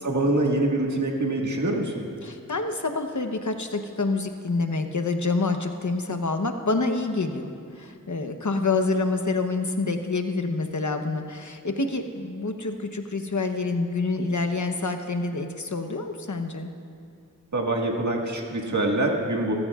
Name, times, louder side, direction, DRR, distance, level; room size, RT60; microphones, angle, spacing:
voice 1, 0.0-2.0 17.5-19.5, right 2 dB, 60° right, -1 dB, 1.8 m, -25 dB
voice 2, 2.2-16.7, left 3 dB, 60° left, 5 dB, 1.0 m, -27 dB
27.5 x 14.5 x 2.5 m, 2.4 s
wide cardioid pair, 55°, 33 cm